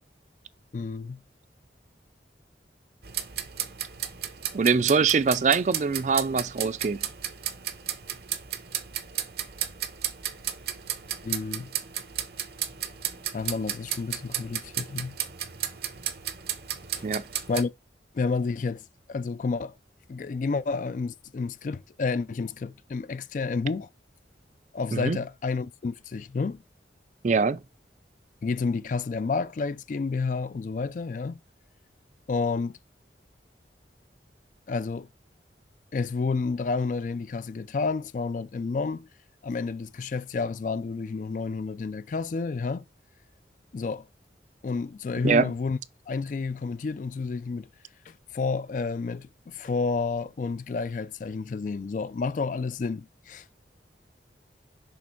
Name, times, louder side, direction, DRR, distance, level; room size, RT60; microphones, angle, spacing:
voice 1, 0.7-1.2 11.2-11.7 13.3-15.2 17.0-17.1 17.5-17.7 18.1-19.7 20.1-23.9 24.7-26.6 28.4-31.4 32.3-32.8 34.7-35.1 35.9-39.1 39.4-42.8 43.7-44.1 44.6-45.8 46.1-47.7 48.1-53.4, left 4 dB, 45° left, 0.3 m, -30 dB
sound 1, 3.0-17.6, right 10 dB, 60° right, 0.8 m, -34 dB
voice 2, 4.5-7.1 17.0-17.2 24.9-25.2 27.2-27.6 45.2-45.5, right 5 dB, 40° right, 0.4 m, -23 dB
6.4 x 3.4 x 4.4 m
head